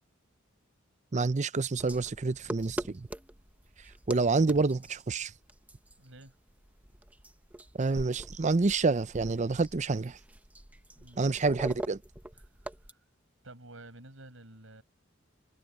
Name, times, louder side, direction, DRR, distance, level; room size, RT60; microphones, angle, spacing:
voice 1, 1.1-3.1 4.1-5.3 7.8-10.2 11.2-12.0, right 3 dB, 35° right, 0.5 m, -28 dB
sound 1, 1.8-12.9, right 1 dB, 5° right, 0.8 m, -44 dB
voice 2, 6.0-6.4 11.0-11.4 12.3-13.0 13.4-14.8, right 1 dB, 70° right, 7.3 m, -51 dB
head